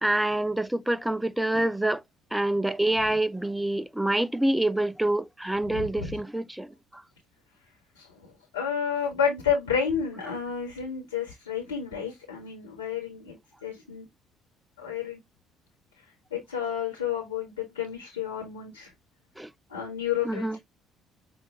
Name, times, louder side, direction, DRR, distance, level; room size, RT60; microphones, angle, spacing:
voice 1, 0.0-2.0 2.3-7.0 19.4-19.5 20.2-20.6, right 1 dB, 5° right, 0.5 m, -26 dB
voice 2, 5.7-6.2 7.9-14.0 14.8-15.2 16.3-18.9 19.7-20.5, left 7 dB, 90° left, 1.5 m, -31 dB
5.5 x 2.7 x 3.5 m
hypercardioid pair, 55°, 0 cm